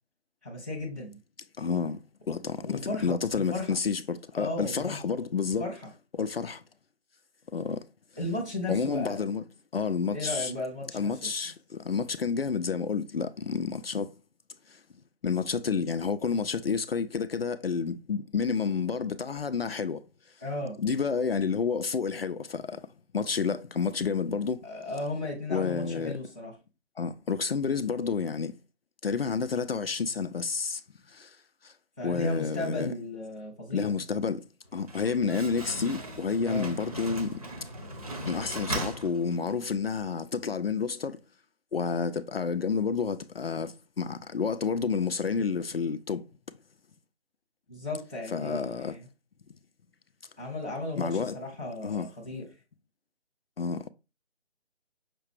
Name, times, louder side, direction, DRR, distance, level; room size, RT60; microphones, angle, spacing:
voice 1, 0.4-1.2 2.6-3.8 4.3-5.0 5.6-5.9 8.2-9.3 10.1-11.3 20.4-20.8 24.6-26.6 32.0-34.0 36.4-36.7 47.7-49.1 50.4-52.5, left 2 dB, 5° right, 0.7 m, -35 dB
voice 2, 1.6-2.0 2.3-5.6 6.1-6.6 7.5-7.8 8.7-9.4 9.7-10.5 10.9-14.1 14.7-14.8 15.2-20.0 20.8-22.8 23.1-24.6 25.5-26.2 27.0-28.6 29.0-30.8 31.1-31.4 31.6-31.7 32.0-32.9 33.7-34.5 34.7-37.4 38.3-41.2 41.7-46.3 48.3-49.0 51.0-51.4 51.8-52.1 53.6-53.9, left 5 dB, 60° left, 0.4 m, -30 dB
Slam, 34.6-39.8, right 1 dB, 35° right, 0.9 m, -38 dB
5.8 x 2.4 x 3.3 m
figure-of-eight pair, 160°, 34 cm